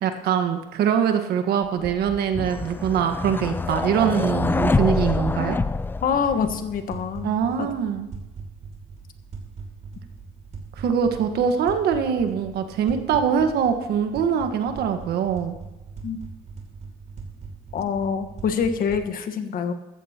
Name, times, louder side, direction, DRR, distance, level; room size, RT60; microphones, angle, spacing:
voice 1, 0.0-5.6 7.2-8.1 10.8-15.5, right 7 dB, 70° right, 6 dB, 1.5 m, -23 dB
sound 1, 1.8-6.8, left 3 dB, 10° left, 0.3 m, -26 dB
voice 2, 6.0-7.7 16.0-16.2 17.7-19.7, left 6 dB, 55° left, 8 dB, 1.4 m, -26 dB
sound 2, 6.1-19.1, right 4 dB, 40° right, 2.9 m, -41 dB
14.5 x 14.5 x 3.0 m, 1.0 s
cardioid pair, 110°, 17 cm